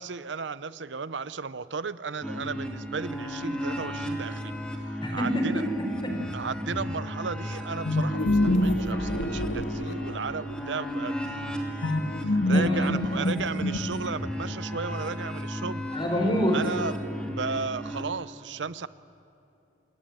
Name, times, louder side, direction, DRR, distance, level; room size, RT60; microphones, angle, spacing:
voice 1, 0.0-4.5 5.1-5.6 6.3-11.2 12.3-15.8 16.5-16.9 17.3-18.9, right 5 dB, 85° right, 16 dB, 0.8 m, -34 dB
sound 1, 2.2-18.0, equal, 5° left, 2.9 m, -35 dB
voice 2, 5.0-6.3 12.5-13.3 15.9-16.8, equal, 25° left, 3 dB, 5.3 m, -28 dB
sound 2, 7.8-10.4 11.8-14.3, left 1 dB, 85° left, 1.8 m, -26 dB
28.0 x 22.0 x 9.3 m, 2.9 s
head